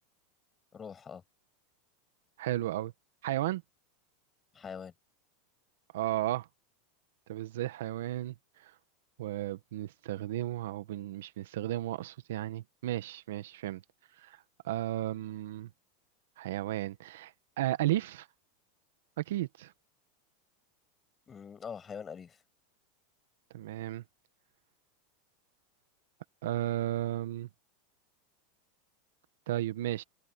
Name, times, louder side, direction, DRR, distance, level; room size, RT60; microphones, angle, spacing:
voice 1, 0.7-1.2 4.5-4.9 21.3-22.4, left 6 dB, 20° left, 7.3 m, -43 dB
voice 2, 2.4-2.9 3.2-3.6 5.9-6.5 7.3-8.3 9.2-13.8 14.2-14.4 14.6-15.7 16.4-17.3 17.6-18.3 19.3-19.7 23.5-24.0 26.4-27.5 29.5-30.0, right 14 dB, 80° right, 1.4 m, -34 dB
supercardioid pair, 130°, 0 cm